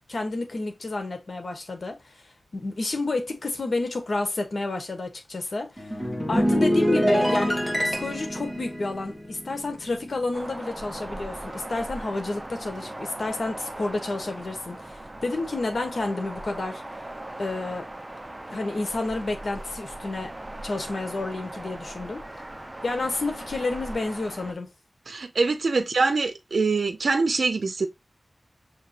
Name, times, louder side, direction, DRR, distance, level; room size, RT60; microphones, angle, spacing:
voice 1, 0.1-2.1 2.5-5.9 6.3-16.8 17.4-17.9 18.5-20.3 20.6-22.2 22.8-24.7, left 2 dB, 75° left, 1.3 m, -30 dB
sound 1, 5.8-10.4 10.7-11.0, equal, 10° left, 1.6 m, -25 dB
sound 2, 10.3-24.5, right 1 dB, 25° right, 0.8 m, -39 dB
voice 2, 25.1-27.9, right 4 dB, 80° right, 0.6 m, -24 dB
6.5 x 3.1 x 2.6 m
wide cardioid pair, 70°, 0 cm